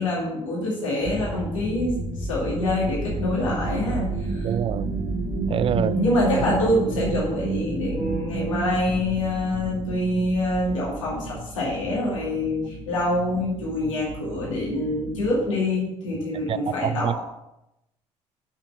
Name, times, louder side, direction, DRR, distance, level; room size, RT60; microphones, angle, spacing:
voice 1, 0.0-4.5 5.7-17.2, left 1 dB, 85° left, 2.3 m, -26 dB
sound 1, 1.0-15.5, right 2 dB, 60° right, 2.3 m, -31 dB
voice 2, 4.4-4.9 5.5-5.9 16.5-17.2, right 9 dB, 35° right, 0.4 m, -25 dB
7.0 x 5.8 x 6.5 m
hypercardioid pair, 55°, 16 cm